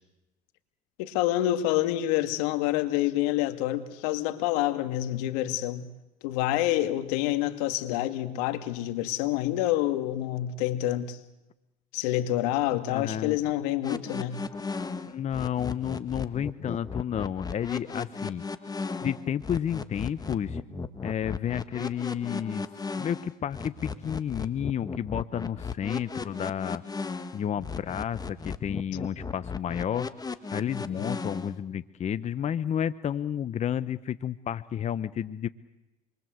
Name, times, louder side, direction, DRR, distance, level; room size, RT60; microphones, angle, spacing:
voice 1, 1.0-5.8 6.2-11.2 11.9-14.4 30.9-31.1, left 14 dB, 80° left, 2.3 m, -27 dB
voice 2, 12.9-13.4 15.1-18.4 19.0-20.6 21.0-22.7 23.0-26.8 27.3-30.1 30.5-35.5, left 9 dB, 35° left, 0.9 m, -31 dB
sound 1, 13.8-31.6, left 4 dB, 20° left, 1.7 m, -35 dB
27.0 x 23.0 x 7.9 m
supercardioid pair, 95°, 20 cm